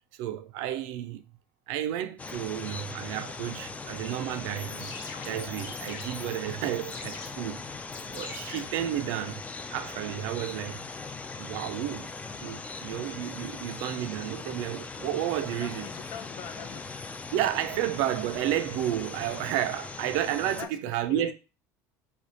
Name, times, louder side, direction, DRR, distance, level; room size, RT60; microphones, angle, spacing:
voice 1, 0.2-1.2 1.7-4.9 5.2-7.6 8.1-9.4 9.7-10.8 11.4-12.1 12.4-15.9 17.3-21.3, right 12 dB, 75° right, 0.4 m, -31 dB
sound 1, 2.2-20.7, left 4 dB, 15° left, 0.4 m, -40 dB
sound 2, 4.4-9.4, left 4 dB, 75° left, 1.0 m, -45 dB
voice 2, 15.5-16.9 20.5-21.3, left 9 dB, 60° left, 0.6 m, -42 dB
3.3 x 2.3 x 3.8 m
supercardioid pair, 95°, 8 cm